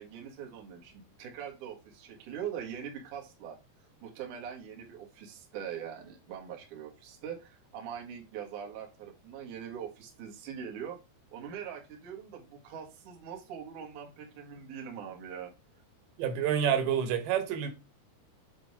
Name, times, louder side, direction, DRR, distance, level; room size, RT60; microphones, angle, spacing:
voice 1, 0.0-3.6 4.0-11.0 11.3-15.5, right 8 dB, 60° right, 2.3 m, -42 dB
voice 2, 16.2-17.7, right 8 dB, 80° right, 3.1 m, -28 dB
7.6 x 3.8 x 4.8 m
omnidirectional pair, 5.2 m